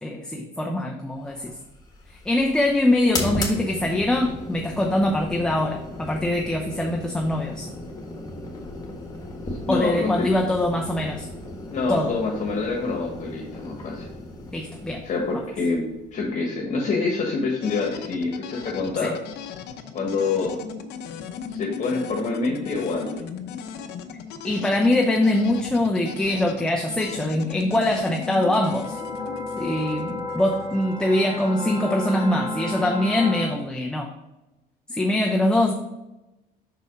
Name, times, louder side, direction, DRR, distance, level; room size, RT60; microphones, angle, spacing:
voice 1, 0.0-1.6 2.1-7.7 9.7-11.3 11.9-12.1 14.5-15.0 19.0-19.1 24.4-29.0 29.6-34.1 34.9-35.7, left 1 dB, 5° left, 0 dB, 0.6 m, -23 dB
sound 1, 1.3-16.6, left 1 dB, 20° left, 1.5 m, -36 dB
voice 2, 9.7-10.3 11.7-14.1 15.0-15.8 16.1-19.2 19.9-20.6 21.5-23.2, left 4 dB, 45° left, 0 dB, 1.2 m, -26 dB
sound 2, 17.6-31.5, left 6 dB, 80° left, 0.7 m, -37 dB
sound 3, 28.4-33.5, left 1 dB, 25° right, 1.7 m, -32 dB
5.7 x 4.1 x 5.0 m, 0.99 s
cardioid pair, 110°, 17 cm